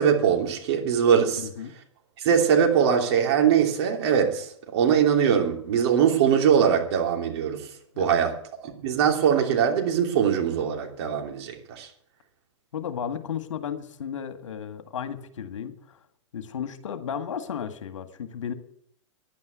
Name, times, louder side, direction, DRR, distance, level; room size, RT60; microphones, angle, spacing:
voice 1, 0.0-1.5 2.2-7.7 8.0-8.3 8.6-11.9, right 8 dB, 55° right, 3.0 m, -22 dB
voice 2, 1.4-1.7 7.9-8.2 12.7-16.0 16.3-18.5, left 8 dB, 70° left, 1.8 m, -34 dB
10.5 x 9.6 x 8.1 m
hypercardioid pair, 115°, 16 cm